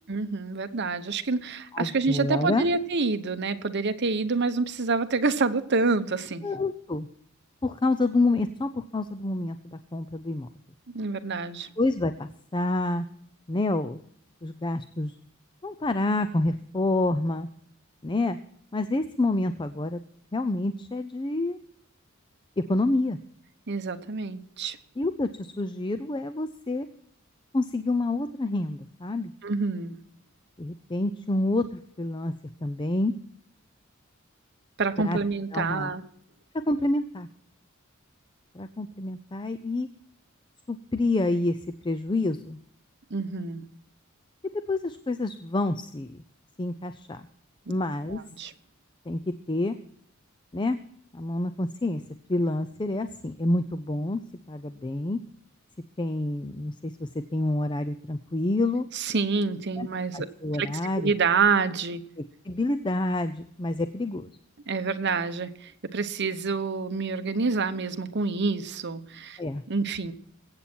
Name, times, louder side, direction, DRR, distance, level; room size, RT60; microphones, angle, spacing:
voice 1, 0.1-6.5 10.9-11.7 23.7-24.8 29.4-30.0 34.8-36.0 43.1-43.7 48.1-48.5 58.9-60.3 60.6-60.7 61.0-62.1 64.7-69.4 69.7-70.1, right 4 dB, 55° right, 10 dB, 1.0 m, -27 dB
voice 2, 1.7-2.6 6.4-7.1 7.6-10.5 11.8-13.1 13.5-14.0 14.4-15.2 15.6-17.5 18.0-18.4 18.7-20.0 20.3-21.6 22.6-23.2 25.0-26.9 27.5-29.3 30.6-32.3 32.6-33.1 35.0-35.2 35.5-35.9 36.5-37.3 38.5-39.9 40.7-42.6 44.4-46.2 46.6-47.3 47.7-48.2 49.1-49.8 50.5-50.8 51.1-52.0 52.3-54.2 54.5-55.2 56.0-58.9 59.8-59.9 60.1-61.1 62.2-64.3 69.4-69.6, left 2 dB, 25° left, 10 dB, 0.5 m, -28 dB
22.5 x 8.8 x 4.4 m, 0.65 s
head